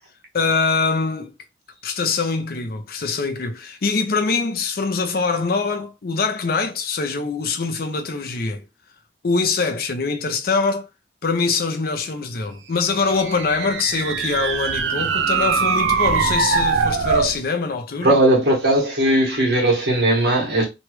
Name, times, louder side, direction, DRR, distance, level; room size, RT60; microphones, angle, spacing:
voice 1, 0.3-1.3 1.8-8.6 9.2-10.9 11.2-18.1, left 4 dB, 55° left, 0.5 m, -23 dB
sound 1, 13.0-17.4, right 5 dB, 90° right, 0.4 m, -22 dB
voice 2, 18.0-20.7, right 1 dB, 65° right, 1.3 m, -18 dB
3.0 x 2.3 x 3.0 m
head